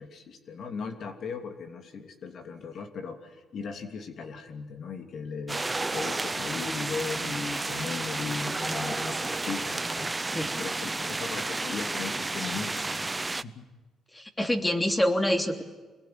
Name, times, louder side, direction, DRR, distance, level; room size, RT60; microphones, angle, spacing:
voice 1, 0.0-5.6 5.9-13.1 13.4-13.7, left 5 dB, 60° left, 5 dB, 2.9 m, -37 dB
sound 1, 5.5-13.4, right 2 dB, 20° right, 0.8 m, -31 dB
voice 2, 14.1-15.6, left 1 dB, 15° left, 5 dB, 3.1 m, -26 dB
27.0 x 21.0 x 9.6 m, 1.2 s
cardioid pair, 90°, 0 cm